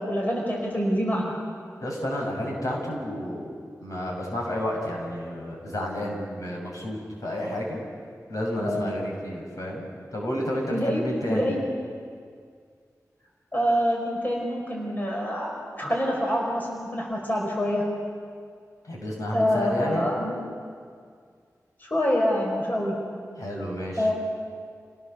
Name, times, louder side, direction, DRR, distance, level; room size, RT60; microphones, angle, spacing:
voice 1, 0.0-1.3 8.6-8.8 10.7-11.0 11.3-11.6 13.5-15.5 15.8-17.9 19.3-20.4 21.8-23.0 24.0-24.1, equal, 30° left, -2 dB, 5.1 m, -26 dB
voice 2, 1.8-7.8 8.3-11.5 18.8-20.1 23.4-24.1, equal, 65° left, -1 dB, 6.6 m, -31 dB
29.5 x 18.5 x 6.9 m, 2.1 s
wide cardioid pair, 95°, 6 cm